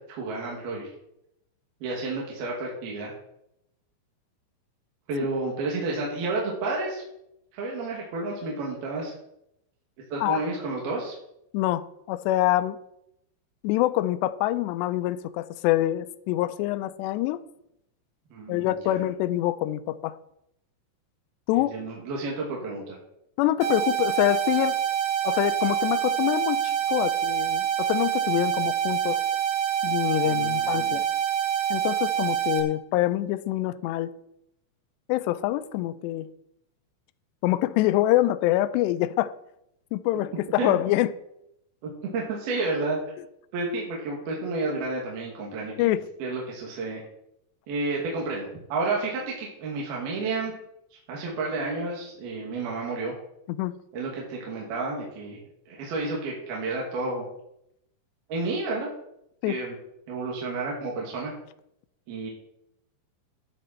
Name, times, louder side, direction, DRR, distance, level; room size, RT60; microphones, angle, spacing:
voice 1, 0.1-0.9 1.8-3.1 5.1-7.0 7.5-9.1 10.1-11.2 18.3-19.0 21.5-23.0 30.2-31.0 40.6-40.8 41.8-43.0 43.5-45.9 46.2-47.0 47.7-50.5 51.1-53.1 53.9-55.4 55.7-57.3 58.3-58.9 59.5-59.8 60.1-61.3 62.1-62.3, right 3 dB, 55° right, 4.0 m, -31 dB
voice 2, 11.5-12.8 13.6-17.4 18.5-20.2 21.5-21.7 23.4-24.8 25.2-29.2 29.8-31.0 31.7-34.1 35.1-36.3 37.4-39.3 39.9-41.1 45.8-46.1 53.5-53.7 59.4-59.6, left 15 dB, 85° left, 2.5 m, -25 dB
sound 1, 23.6-32.6, right 10 dB, 90° right, 4.5 m, -26 dB
13.0 x 11.0 x 4.4 m
omnidirectional pair, 5.6 m